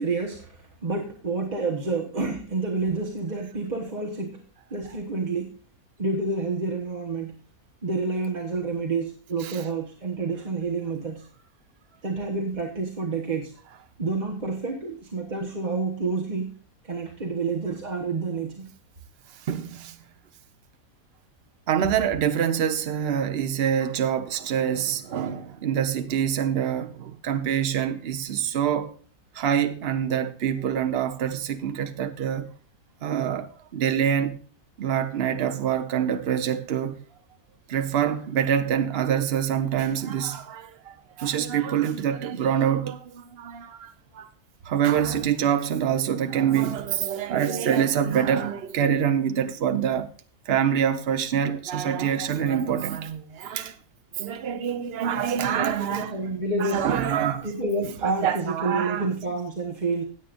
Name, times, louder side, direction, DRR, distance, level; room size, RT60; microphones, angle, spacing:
voice 1, 0.0-4.4 4.7-5.5 6.0-7.4 7.8-11.3 12.0-13.5 14.0-16.6 16.8-18.7 55.5-56.9 57.4-60.0, right 3 dB, 30° right, 1.3 m, -29 dB
voice 2, 19.5-20.0 21.7-28.9 29.3-32.5 33.0-34.4 34.8-37.0 37.7-44.3 44.6-50.1 50.5-53.7 54.2-56.3 56.6-57.5 58.0-59.1, right 9 dB, 50° right, 1.0 m, -25 dB
16.5 x 8.4 x 2.5 m
omnidirectional pair, 1.5 m